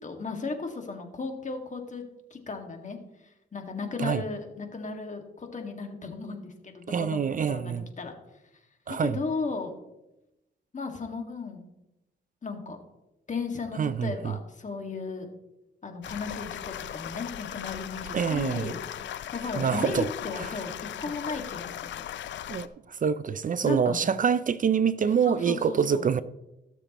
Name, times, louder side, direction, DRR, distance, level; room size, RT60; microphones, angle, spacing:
voice 1, 0.0-2.0 2.3-3.0 3.5-8.1 9.0-9.7 10.7-11.6 12.4-12.8 13.3-15.3 15.8-20.7 21.0-22.1 23.6-24.0 25.2-26.1, left 4 dB, 40° left, 1.9 m, -35 dB
voice 2, 6.9-7.8 8.9-9.2 13.8-14.4 18.1-18.7 19.6-20.1 20.4-20.5 22.5-26.2, right 7 dB, 45° right, 0.5 m, -26 dB
sound 1, 16.0-22.7, left 11 dB, 75° left, 0.5 m, -38 dB
17.5 x 7.0 x 3.0 m
cardioid pair, 75°, 19 cm